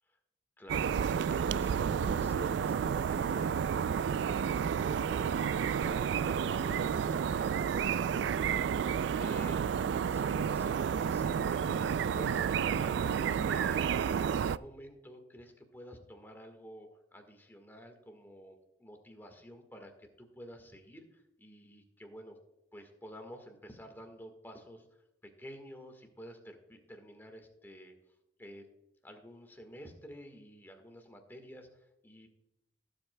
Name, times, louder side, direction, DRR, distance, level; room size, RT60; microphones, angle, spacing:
voice 1, 0.6-3.5 3.8-9.6 10.1-22.4 22.7-25.0 25.4-27.9 28.4-28.6 29.0-32.3, equal, 10° left, 4 dB, 1.5 m, -51 dB
sound 1, 0.7-14.6, right 7 dB, 85° right, 0.3 m, -31 dB
17.5 x 7.9 x 2.2 m, 0.91 s
head